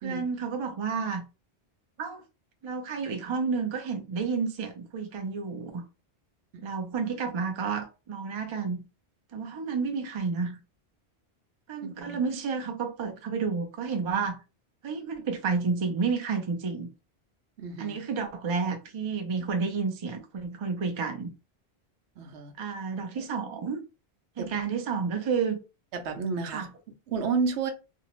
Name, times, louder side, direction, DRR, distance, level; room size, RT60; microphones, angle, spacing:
voice 1, 0.0-1.2 2.0-2.2 2.6-5.8 6.6-8.8 9.3-10.6 11.7-14.4 14.8-16.9 17.8-21.3 22.6-23.8 24.4-25.6 26.5-26.7, right 5 dB, 45° right, 0.4 m, -30 dB
voice 2, 11.8-12.2 17.6-18.0 22.2-22.5 23.2-23.3 24.4-24.5 25.9-26.7 27.1-27.7, right 5 dB, 85° right, 0.9 m, -31 dB
2.6 x 2.1 x 2.9 m
omnidirectional pair, 1.1 m